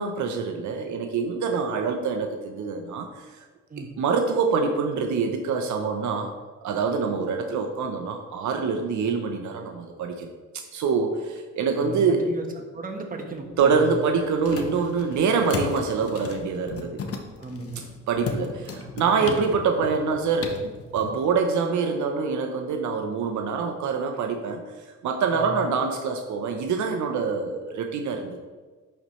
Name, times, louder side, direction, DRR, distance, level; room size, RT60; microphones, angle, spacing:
voice 1, 0.0-3.4 4.0-6.3 6.6-10.3 10.7-12.3 13.6-17.0 18.1-20.6 20.9-28.4, right 5 dB, 70° right, 4 dB, 0.8 m, -25 dB
voice 2, 11.7-13.9 14.1-14.3 17.4-17.8 19.2-19.4 25.3-25.6, right 3 dB, 30° right, 2 dB, 1.2 m, -36 dB
sound 1, 13.3-21.1, left 4 dB, 50° left, 1.0 m, -37 dB
10.5 x 4.3 x 3.2 m, 1.4 s
cardioid pair, 90°, 30 cm